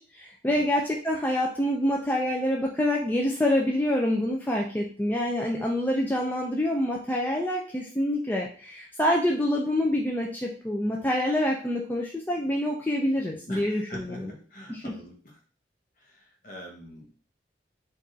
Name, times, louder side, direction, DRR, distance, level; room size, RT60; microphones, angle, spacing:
voice 1, 0.0-14.3 14.7-14.9, left 1 dB, 10° left, -1 dB, 0.3 m, -26 dB
voice 2, 13.5-15.4 16.0-17.1, equal, 45° left, 0 dB, 0.9 m, -44 dB
4.6 x 2.4 x 2.6 m, 0.41 s
head